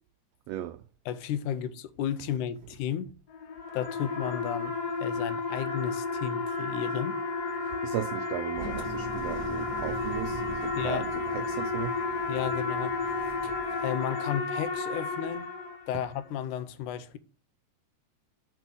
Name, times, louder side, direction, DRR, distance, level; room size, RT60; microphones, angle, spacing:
voice 1, 0.5-0.8 7.6-12.0, right 13 dB, 85° right, 1.4 m, -36 dB
voice 2, 1.1-3.1 3.7-4.7 5.0-7.2 10.8-11.1 12.3-13.0 13.8-15.5 15.9-17.2, left 10 dB, 85° left, 2.3 m, -33 dB
sound 1, 3.3-16.1, left 3 dB, 70° left, 0.9 m, -32 dB
Engine, 8.5-14.4, right 2 dB, 10° left, 1.5 m, -43 dB
6.2 x 5.9 x 6.9 m
omnidirectional pair, 3.4 m